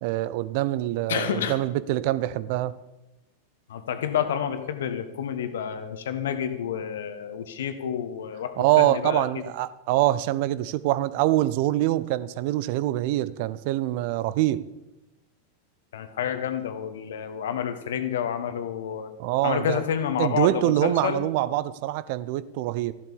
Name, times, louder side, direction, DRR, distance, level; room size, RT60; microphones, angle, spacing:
voice 1, 0.0-2.7 8.6-14.6 19.2-19.8 20.2-22.9, right 15 dB, 45° right, 0.6 m, -24 dB
voice 2, 1.1-1.6 3.7-9.4 15.9-19.1 19.4-21.2, left 8 dB, 60° left, 1.5 m, -29 dB
14.0 x 12.0 x 6.9 m
figure-of-eight pair, 90°, 0 cm